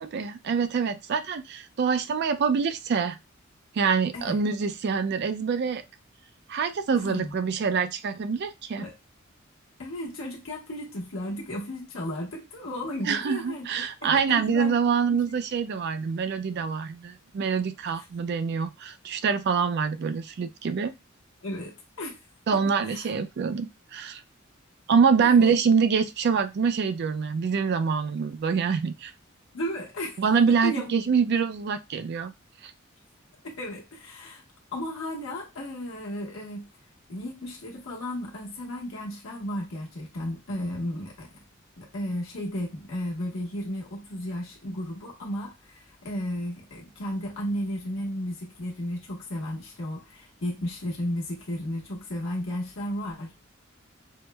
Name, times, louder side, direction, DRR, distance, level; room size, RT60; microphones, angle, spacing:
voice 1, 0.0-3.2 3.8-5.8 6.5-8.9 13.0-20.9 22.5-24.2 24.9-29.1 30.2-32.3 32.6-32.7, right 6 dB, 55° right, 0.3 m, -25 dB
voice 2, 6.9-7.3 8.8-8.9 9.8-14.7 15.1-15.4 21.4-22.2 22.8-23.1 25.2-25.6 29.5-30.2 30.6-30.9 33.4-34.4 34.7-36.6 37.1-41.3 41.8-53.3, equal, 75° left, 1.0 m, -34 dB
4.5 x 2.0 x 2.2 m
head